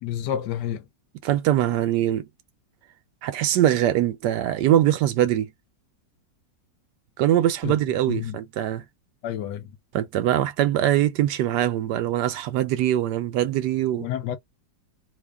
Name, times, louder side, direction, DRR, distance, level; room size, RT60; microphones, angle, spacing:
voice 1, 0.0-0.8 7.6-7.7 8.1-8.4 9.2-9.7 14.0-14.4, left 10 dB, 75° left, 1.3 m, -29 dB
voice 2, 1.2-2.3 3.2-5.5 7.2-8.8 9.9-14.1, right 12 dB, 75° right, 1.1 m, -22 dB
3.1 x 2.2 x 3.3 m
omnidirectional pair, 1.9 m